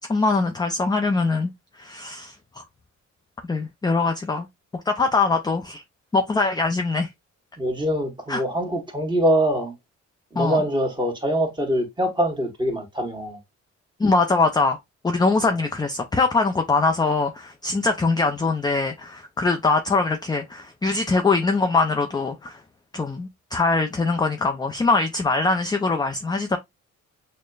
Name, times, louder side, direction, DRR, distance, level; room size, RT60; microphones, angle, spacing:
voice 1, 0.1-1.5 1.8-2.6 3.4-4.5 4.9-5.8 6.1-7.1 8.3-8.4 10.4-10.6 14.0-14.8 15.0-22.6 22.9-26.6, left 3 dB, 15° left, 0.4 m, -22 dB
voice 2, 7.6-9.7 10.3-13.4 15.4-15.5, equal, 15° right, 1.3 m, -24 dB
6.3 x 2.1 x 2.3 m
cardioid pair, 90°, 30 cm